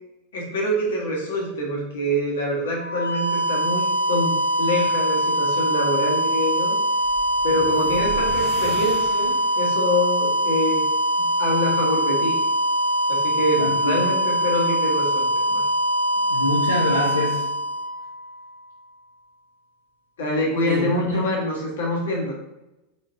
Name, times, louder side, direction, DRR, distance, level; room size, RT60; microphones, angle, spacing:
voice 1, 0.3-4.3 4.6-6.7 7.4-10.8 11.2-12.4 13.1-15.6 20.2-22.3, left 1 dB, 65° left, -3 dB, 1.3 m, -25 dB
sound 1, 2.7-18.5, equal, 90° right, 0.5 m, -23 dB
sound 2, 6.9-9.8, right 4 dB, 35° right, 0.8 m, -37 dB
voice 2, 13.6-14.0 16.3-17.5 20.7-21.3, left 1 dB, 85° left, -5 dB, 0.6 m, -25 dB
3.8 x 3.5 x 2.6 m, 0.95 s
figure-of-eight pair, 85°, 0 cm